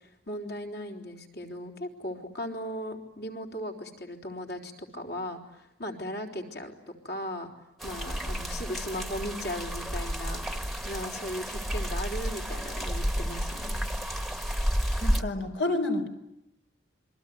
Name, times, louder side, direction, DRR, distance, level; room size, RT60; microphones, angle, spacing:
voice 1, 0.0-6.7 7.0-7.5 7.8-10.4 10.8-13.8, equal, 55° left, 2 dB, 4.1 m, -37 dB
sound 1, 7.8-15.2, equal, ahead, 1.4 m, -31 dB
voice 2, 15.0-16.1, left 2 dB, 70° left, 7 dB, 3.8 m, -29 dB
27.5 x 23.0 x 9.4 m, 0.86 s
head